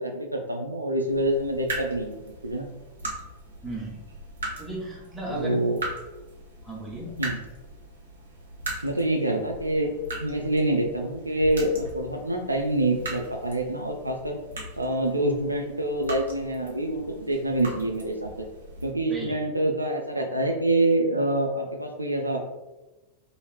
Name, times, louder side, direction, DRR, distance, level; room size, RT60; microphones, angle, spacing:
voice 1, 0.0-2.7 5.3-5.8 7.2-7.4 8.8-9.9 10.2-14.4 14.8-18.5 18.8-22.4, right 1 dB, 85° right, 3 dB, 0.3 m, -26 dB
sound 1, 1.1-18.9, right 2 dB, 70° right, 0.8 m, -40 dB
voice 2, 3.6-4.1 4.6-5.7 6.6-7.2 19.1-19.4, right 1 dB, 10° right, -3 dB, 0.8 m, -35 dB
2.8 x 2.7 x 3.0 m, 1.1 s
figure-of-eight pair, 90°, 0 cm